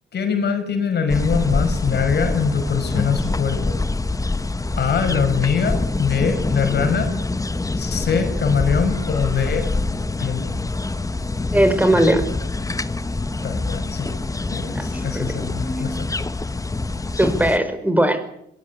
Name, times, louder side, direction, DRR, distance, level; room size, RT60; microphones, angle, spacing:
voice 1, 0.1-3.8 4.7-7.1 7.8-9.7 10.2-10.5 13.4-14.1 14.5-16.1, left 6 dB, 55° left, 7 dB, 6.1 m, -23 dB
sound 1, 1.1-17.6, left 3 dB, 15° left, 1.5 m, -25 dB
voice 2, 11.5-12.3 14.7-14.8 15.1-15.4 17.2-18.2, right 1 dB, 10° right, 10 dB, 5.2 m, -18 dB
23.0 x 20.0 x 8.5 m, 0.75 s
cardioid pair, 90°, 20 cm